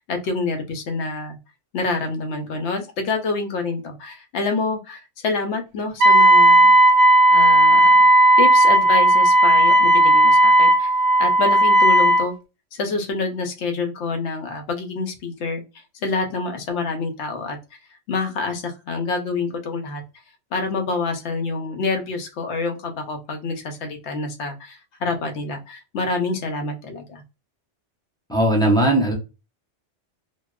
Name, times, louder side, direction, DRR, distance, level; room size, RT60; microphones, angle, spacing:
voice 1, 0.1-1.4 1.7-6.8 7.3-8.0 8.4-10.9 11.2-12.3 12.7-15.6 16.0-17.6 18.1-20.0 20.5-27.2, left 3 dB, 75° left, 4 dB, 0.9 m, -27 dB
Wind instrument woodwind instrument, 6.0-12.2, right 1 dB, 85° right, 0.9 m, -14 dB
voice 2, 28.3-29.1, right 1 dB, 5° left, -2 dB, 0.4 m, -18 dB
2.8 x 2.0 x 2.2 m, 0.29 s
omnidirectional pair, 1.2 m